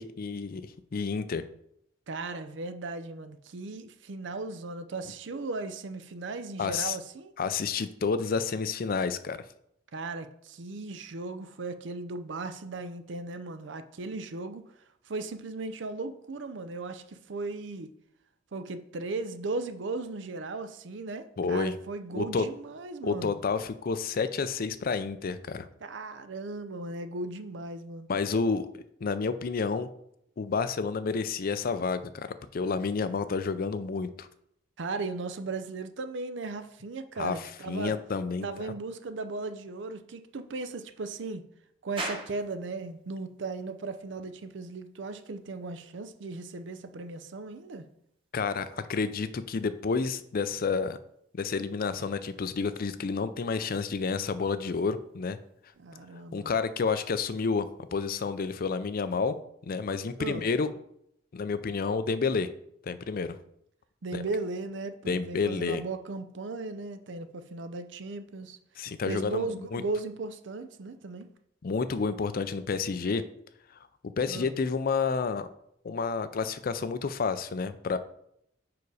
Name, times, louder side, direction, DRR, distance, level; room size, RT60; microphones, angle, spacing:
voice 1, 0.0-1.4 6.6-7.0 7.4-9.4 21.4-21.8 22.1-22.5 23.0-25.7 28.1-29.9 30.4-34.3 37.2-38.7 48.3-51.0 51.3-55.4 56.3-59.4 59.6-60.7 61.3-62.5 62.8-63.4 64.1-64.2 65.1-65.8 68.8-69.8 71.6-73.2 74.2-75.5 75.8-78.0, left 5 dB, 50° left, 0.4 m, -30 dB
voice 2, 2.1-7.3 9.9-14.6 15.1-17.9 18.5-23.4 25.8-28.1 34.8-37.9 38.4-41.4 41.8-47.9 55.8-56.5 60.2-60.5 64.0-68.6 69.1-71.3 74.3-74.5, right 3 dB, 70° right, 0.6 m, -37 dB
sound 1, 42.0-59.4, right 2 dB, 30° right, 1.2 m, -49 dB
5.2 x 4.8 x 4.8 m
head